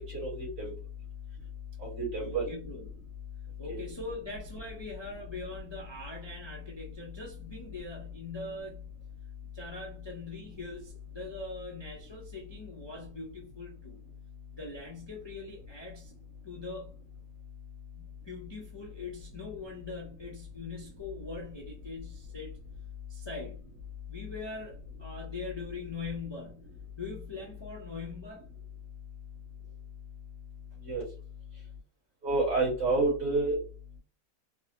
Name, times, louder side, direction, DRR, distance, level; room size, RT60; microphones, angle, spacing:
voice 1, 0.1-0.7 1.8-2.5 3.7-3.8 30.8-31.0 32.2-33.6, right 2 dB, 60° right, 2.2 m, -29 dB
voice 2, 2.2-2.9 3.6-8.9 9.5-14.0 14.5-16.1 16.4-17.0 17.9-22.6 23.1-23.6 24.1-28.5, left 3 dB, 35° left, 0.4 m, -42 dB
4.6 x 2.1 x 2.8 m
omnidirectional pair, 1.6 m